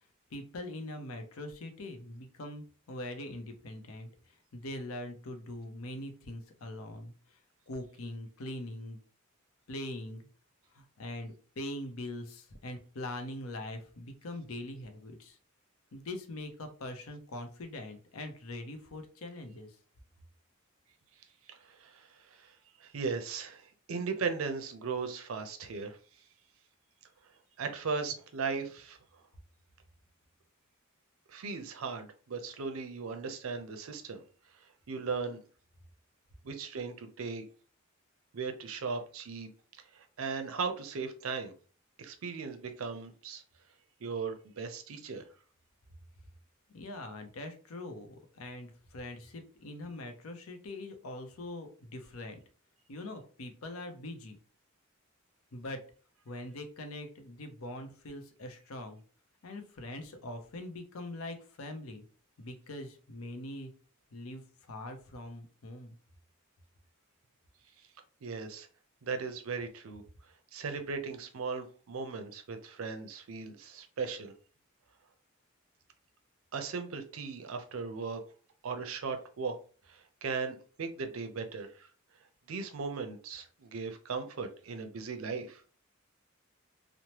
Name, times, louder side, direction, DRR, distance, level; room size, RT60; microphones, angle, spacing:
voice 1, 0.3-4.1 4.5-7.1 7.7-9.0 9.7-10.2 10.7-15.4 15.9-19.7 46.7-52.4 52.9-54.4 55.5-55.8 56.3-59.0 59.4-62.0 62.4-63.7 64.1-65.9, left 1 dB, 85° left, 0.6 m, -42 dB
voice 2, 21.5-26.0 27.6-29.0 31.3-34.2 34.9-35.4 36.4-37.4 38.3-39.5 39.9-41.5 42.0-43.4 44.0-45.3 68.2-68.7 69.0-70.0 70.5-74.3 76.5-78.2 78.6-79.6 79.9-81.9 82.5-85.6, right 5 dB, 75° right, 0.5 m, -37 dB
3.1 x 2.0 x 2.8 m
head